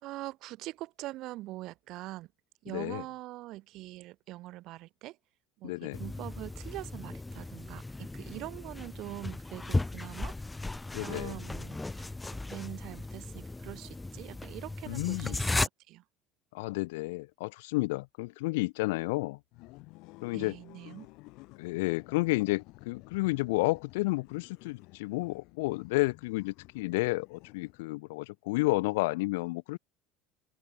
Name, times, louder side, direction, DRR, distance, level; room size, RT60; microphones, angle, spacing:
voice 1, 0.0-2.3 2.6-5.2 5.6-10.3 11.0-16.0 20.3-21.1, right 17 dB, 55° right, 3.6 m, -43 dB
voice 2, 5.6-6.0 10.9-11.4 14.9-15.4 16.5-19.4 20.2-20.6 21.6-29.8, left 23 dB, 85° left, 0.5 m, -31 dB
sound 1, 5.9-15.7, left 2 dB, 10° left, 0.7 m, -36 dB
sound 2, 19.5-28.1, left 23 dB, 65° left, 6.7 m, -53 dB
supercardioid pair, 125°, 0 cm